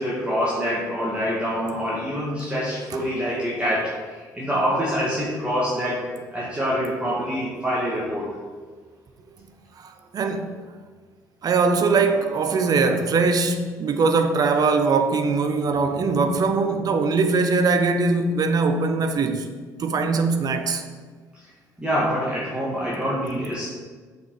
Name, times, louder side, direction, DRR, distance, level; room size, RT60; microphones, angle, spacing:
voice 1, 0.0-8.3 21.3-21.5 21.8-23.7, equal, 10° right, 1.8 m, -26 dB
voice 2, 9.8-10.5 11.4-19.5 19.8-20.8, right 4 dB, 45° right, 0.7 m, -21 dB
6.6 x 5.1 x 4.7 m
hypercardioid pair, 50°, 9 cm